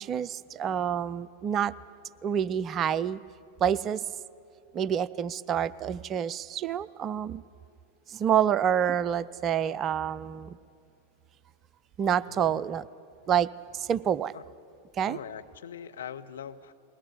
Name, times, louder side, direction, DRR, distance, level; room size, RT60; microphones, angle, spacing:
voice 1, 0.0-1.7 2.2-3.2 3.6-4.0 4.7-7.4 8.1-10.6 12.0-12.9 13.3-14.3 15.0-15.2, right 9 dB, 30° right, 17 dB, 0.5 m, -28 dB
voice 2, 12.3-12.6 14.3-14.4 15.0-16.7, left 8 dB, 65° left, 8 dB, 0.8 m, -42 dB
21.0 x 17.5 x 9.9 m, 2.4 s
figure-of-eight pair, 90°, 0 cm